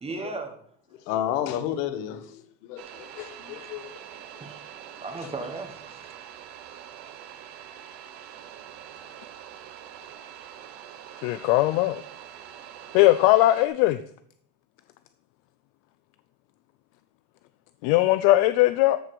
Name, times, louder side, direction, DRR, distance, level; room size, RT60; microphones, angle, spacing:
voice 1, 0.0-0.5 3.5-3.7 4.4-6.1, right 3 dB, 15° right, 1.2 m, -37 dB
voice 2, 1.0-4.0 5.2-5.3, left 11 dB, 80° left, 1.5 m, -32 dB
sound 1, 2.8-13.7, right 10 dB, 50° right, 1.3 m, -44 dB
voice 3, 11.2-12.0 12.9-14.0 17.8-19.0, left 16 dB, 60° left, 0.6 m, -19 dB
13.5 x 4.7 x 6.8 m
cardioid pair, 160°, 47 cm